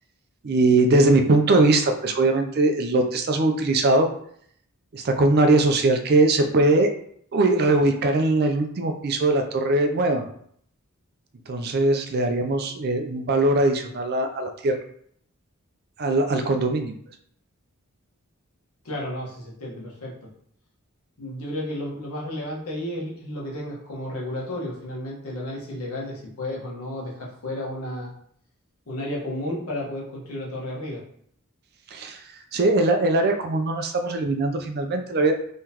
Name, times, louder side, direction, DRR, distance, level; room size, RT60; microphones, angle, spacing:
voice 1, 0.4-4.1 4.9-6.9 7.3-10.2 11.5-14.8 16.0-16.9 31.9-32.2 32.5-35.3, right 2 dB, 45° right, 6 dB, 0.4 m, -21 dB
voice 2, 18.8-20.1 21.2-28.1 28.9-31.0, left 1 dB, 80° left, -4 dB, 1.3 m, -32 dB
3.8 x 3.1 x 2.9 m, 0.66 s
head